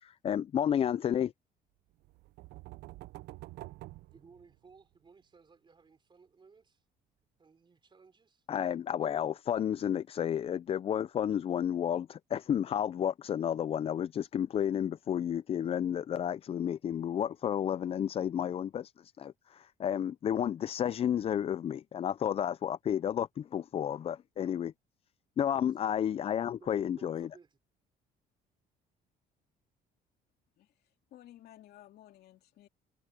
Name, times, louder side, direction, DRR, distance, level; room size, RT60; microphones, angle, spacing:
voice 1, 0.0-1.3 8.5-24.7 25.4-27.3, left 9 dB, 35° left, 0.4 m, -31 dB
sound 1, 2.0-4.9, right 18 dB, 80° right, 0.6 m, -48 dB
voice 2, 4.1-6.8 7.4-8.5 25.8-26.0 26.6-27.6, right 5 dB, 30° right, 3.7 m, -59 dB
voice 3, 30.6-32.7, left 13 dB, 70° left, 2.8 m, -56 dB
cardioid pair, 110°, 17 cm